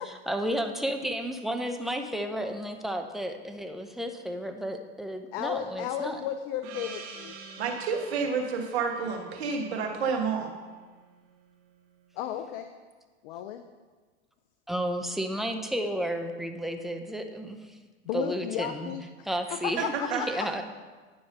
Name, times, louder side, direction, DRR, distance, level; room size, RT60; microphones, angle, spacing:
voice 1, 0.0-6.2 14.7-17.8 18.1-18.9 19.2-19.9 20.1-20.6, equal, ahead, 5 dB, 0.6 m, -32 dB
voice 2, 5.3-7.4 12.1-12.7 13.2-13.6 18.1-20.5, left 10 dB, 60° left, 8 dB, 0.6 m, -34 dB
Gong, 6.6-11.4, right 5 dB, 50° right, 1.7 m, -47 dB
voice 3, 7.6-10.5 19.8-20.2, right 5 dB, 75° right, 1 dB, 1.7 m, -29 dB
9.9 x 4.7 x 5.4 m, 1.4 s
hypercardioid pair, 95°, 33 cm